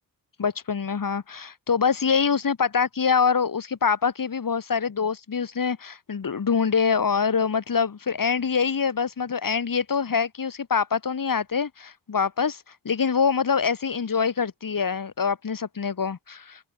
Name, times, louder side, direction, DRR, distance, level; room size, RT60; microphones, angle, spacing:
voice 1, 0.4-16.6, left 6 dB, 65° left, 6.4 m, -25 dB
wide cardioid pair, 95°, 35 cm